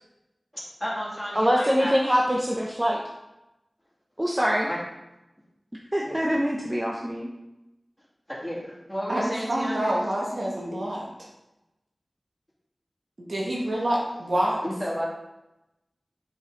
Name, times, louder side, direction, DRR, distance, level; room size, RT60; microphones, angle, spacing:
voice 1, 0.8-2.0 4.7-4.8 6.0-6.4 8.3-10.0 14.6-15.0, equal, 10° left, -5 dB, 2.6 m, -33 dB
voice 2, 1.3-3.0 4.2-4.7 5.9-7.3, equal, 15° right, -2 dB, 0.9 m, -24 dB
voice 3, 9.1-11.1 13.3-14.6, right 1 dB, 85° right, -4 dB, 2.0 m, -27 dB
7.9 x 5.6 x 3.9 m, 0.95 s
wide cardioid pair, 65°, 0 cm